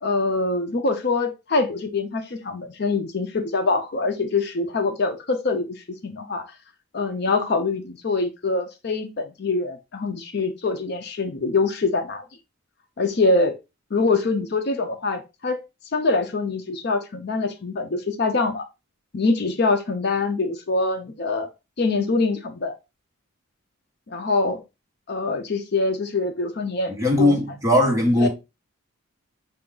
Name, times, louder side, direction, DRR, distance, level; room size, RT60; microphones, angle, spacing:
voice 1, 0.0-5.7 6.0-6.4 6.9-12.2 13.0-13.5 13.9-15.6 15.9-18.6 19.1-21.5 21.8-22.8 24.1-24.6 25.1-26.9 27.2-27.4 28.2-28.3, left 3 dB, 50° left, 0.5 m, -24 dB
voice 2, 26.9-28.3, left 1 dB, 15° right, 1.0 m, -19 dB
5.6 x 2.3 x 3.6 m
head